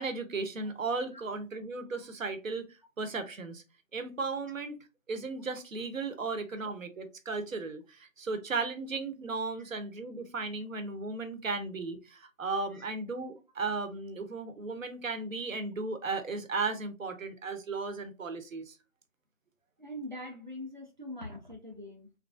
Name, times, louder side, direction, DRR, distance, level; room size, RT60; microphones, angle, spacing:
voice 1, 0.0-2.7 3.0-3.6 3.9-4.8 5.1-18.8, right 4 dB, 70° right, 0.8 m, -35 dB
voice 2, 19.8-22.1, left 1 dB, 40° right, 0.4 m, -43 dB
3.1 x 2.4 x 2.4 m
figure-of-eight pair, 160°, 40 cm